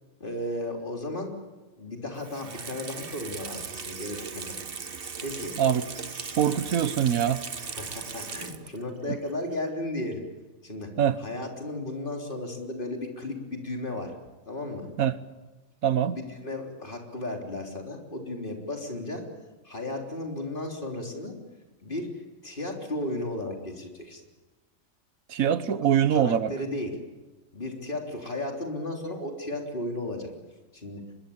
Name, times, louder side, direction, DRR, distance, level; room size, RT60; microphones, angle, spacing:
voice 1, 0.2-1.4 1.8-4.6 5.2-5.5 6.1-6.4 7.6-10.2 10.6-10.9 11.2-14.1 14.4-14.9 16.1-19.2 19.6-21.4 21.8-24.2 26.1-27.0 27.5-30.3 30.7-31.0, left 1 dB, 40° left, 3.7 m, -34 dB
Water tap faucet / Sink (filling or washing), 2.2-8.9 9.3-9.4, right 5 dB, 45° right, 1.3 m, -38 dB
voice 2, 6.4-7.4 9.1-9.2 11.0-11.2 15.0-15.2 15.8-16.2 25.3-26.5, right 9 dB, 85° right, 1.5 m, -23 dB
24.5 x 22.0 x 8.7 m
omnidirectional pair, 1.4 m